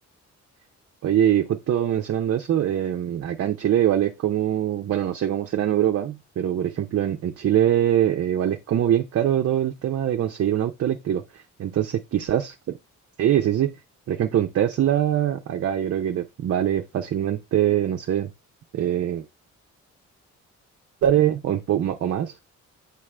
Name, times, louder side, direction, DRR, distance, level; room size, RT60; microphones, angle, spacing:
voice 1, 1.0-11.2 11.6-12.8 13.2-13.7 14.1-18.3 18.7-19.2 21.0-22.3, right 11 dB, 55° right, 0.6 m, -23 dB
7.3 x 5.7 x 3.2 m
cardioid pair, 130°, 30 cm